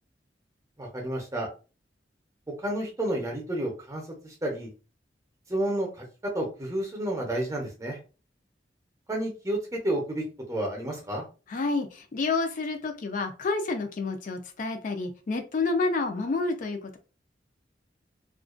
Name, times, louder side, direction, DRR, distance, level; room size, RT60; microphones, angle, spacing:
voice 1, 0.8-1.5 2.6-4.7 5.5-6.0 6.3-8.0 9.1-11.2, right 1 dB, 20° right, -1 dB, 0.7 m, -31 dB
voice 2, 11.5-17.0, left 3 dB, 45° left, 5 dB, 0.4 m, -29 dB
2.4 x 2.2 x 2.4 m, 0.34 s
head